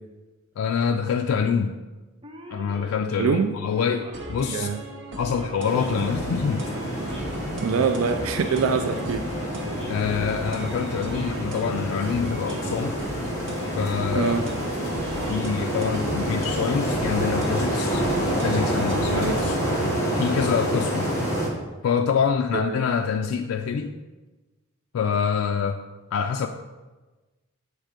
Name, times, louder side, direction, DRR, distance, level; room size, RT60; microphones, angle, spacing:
voice 1, 0.6-1.8 2.5-4.7 5.2-6.7 9.9-13.0 13.8-14.3 15.1-18.1 18.4-19.6 20.1-21.2 21.8-23.9 24.9-25.8 26.1-26.5, left 6 dB, 80° left, 4 dB, 0.3 m, -26 dB
Male speech man speaking / Siren, 2.2-16.9, equal, 25° right, 0.6 m, -43 dB
voice 2, 3.2-3.5 4.5-4.8 7.6-9.3 14.1-14.4 19.1-19.4 22.5-22.8, right 5 dB, 85° right, 7 dB, 0.4 m, -24 dB
sound 1, 4.1-19.9, right 1 dB, 60° right, 0.8 m, -38 dB
sound 2, 5.6-21.5, equal, 15° left, 1.3 m, -28 dB
7.4 x 3.3 x 5.0 m, 1.2 s
head